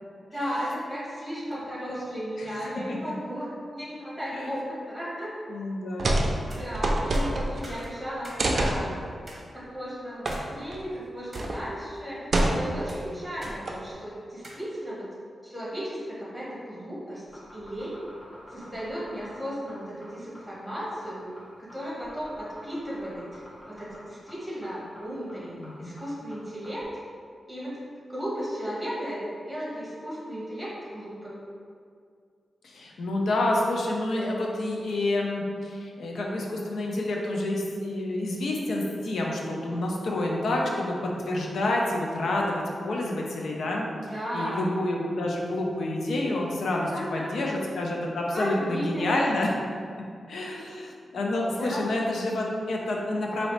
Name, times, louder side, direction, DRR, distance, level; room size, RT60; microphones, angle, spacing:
voice 1, 0.3-5.3 6.4-9.0 9.5-12.2 12.5-15.1 15.4-17.2 17.5-17.9 18.5-21.3 21.6-26.9 27.5-27.8 28.1-31.4 43.9-44.7 46.9-47.5 48.3-49.2 51.6-51.8, equal, ahead, -8 dB, 1.4 m, -35 dB
voice 2, 5.5-6.3 25.6-26.0 32.6-43.9 44.3-49.5 50.3-53.5, left 1 dB, 85° left, -1 dB, 0.5 m, -28 dB
sound 1, 6.0-6.3 6.6-7.7 8.4-8.8 10.2-10.4 10.7-10.8 11.3-11.6 12.3-12.9 13.4-13.9, right 1 dB, 55° right, 0.4 m, -25 dB
sound 2, 6.4-6.6 7.1-8.5 8.8-8.9 9.3-9.4 10.3-10.5 10.9-11.5 12.2-12.5 12.9-13.6 13.8-14.0 14.4-14.6, right 1 dB, 20° right, 0.9 m, -45 dB
sound 3, 17.2-26.8, left 1 dB, 35° left, 0.8 m, -49 dB
4.0 x 2.7 x 3.2 m, 2.2 s
wide cardioid pair, 110°, 0 cm